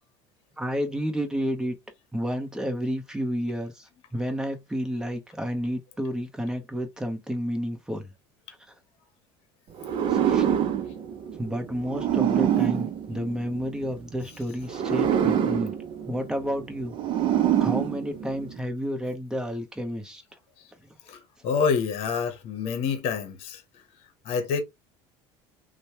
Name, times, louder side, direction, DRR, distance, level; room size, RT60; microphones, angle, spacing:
voice 1, 0.6-1.7 2.1-8.1 10.1-10.5 11.4-15.7 16.1-16.9 17.3-20.2, equal, 5° right, 0.8 m, -31 dB
sound 1, 9.8-13.9 14.6-18.6, right 10 dB, 45° right, 0.5 m, -26 dB
voice 2, 21.1-23.8 24.2-24.6, left 6 dB, 55° left, 0.9 m, -27 dB
3.0 x 2.1 x 2.8 m
supercardioid pair, 115°, 12 cm